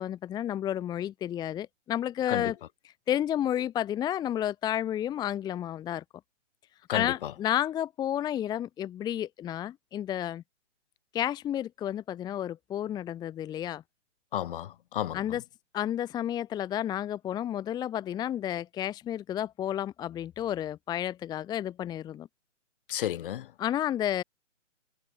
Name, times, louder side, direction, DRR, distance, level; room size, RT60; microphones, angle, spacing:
voice 1, 0.0-2.6 3.1-6.0 6.9-10.4 11.1-13.8 15.1-15.4 15.7-22.3 23.6-24.2, left 11 dB, 10° left, 1.1 m, -31 dB
voice 2, 6.9-7.3 14.3-15.2 22.9-23.5, left 11 dB, 45° left, 2.5 m, -32 dB
hypercardioid pair, 140°, 37 cm